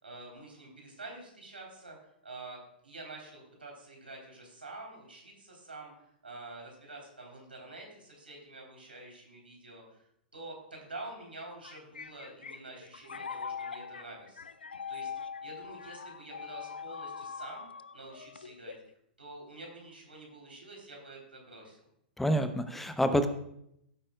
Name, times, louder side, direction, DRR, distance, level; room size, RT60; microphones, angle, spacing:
voice 1, 0.0-2.0 2.2-10.0 10.3-14.5 14.9-15.1 15.4-17.7 17.9-18.7 19.2-21.8, right 2 dB, 85° right, 0 dB, 3.6 m, -47 dB
sound 1, 11.4-18.9, left 6 dB, 80° left, 0.4 m, -42 dB
voice 2, 22.2-23.3, equal, 5° left, 9 dB, 0.8 m, -27 dB
16.5 x 8.7 x 2.3 m, 0.75 s
figure-of-eight pair, 110°, 5 cm